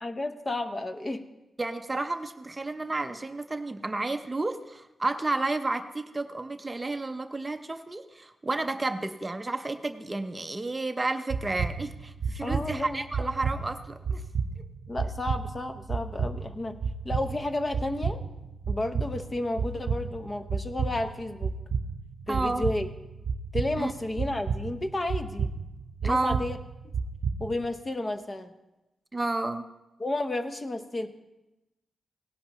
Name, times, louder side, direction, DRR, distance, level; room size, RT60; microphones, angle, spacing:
voice 1, 0.0-1.2 12.4-13.0 14.9-16.8 17.0-18.2 18.7-21.5 22.3-22.9 23.5-25.5 26.0-26.6 27.4-28.5 30.0-31.1, left 2 dB, 30° left, 8 dB, 0.9 m, -32 dB
voice 2, 1.6-14.2 22.3-22.6 23.8-23.9 26.0-26.4 29.1-29.7, right 2 dB, 25° right, 8 dB, 0.6 m, -31 dB
sound 1, 11.3-27.7, right 5 dB, 85° right, 0.6 m, -33 dB
17.5 x 11.0 x 3.0 m, 0.99 s
cardioid pair, 90°, 0 cm